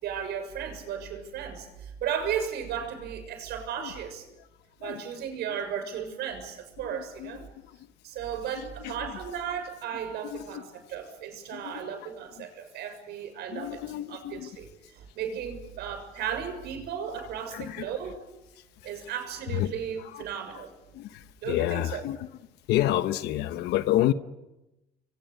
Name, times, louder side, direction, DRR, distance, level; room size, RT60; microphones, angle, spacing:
voice 1, 0.0-4.3 4.8-7.5 8.0-13.8 14.1-18.2 18.8-20.7 21.4-22.0, right 8 dB, 75° right, 6 dB, 6.9 m, -35 dB
voice 2, 6.9-7.9 8.5-9.2 10.2-10.6 11.5-11.9 12.4-12.5 13.5-14.5 17.5-17.9 19.5-19.7 20.0-20.2 20.5-20.6 20.9-22.3 22.7-24.1, left 13 dB, 85° left, 11 dB, 1.1 m, -30 dB
27.5 x 24.0 x 8.3 m, 0.98 s
cardioid pair, 110°, 17 cm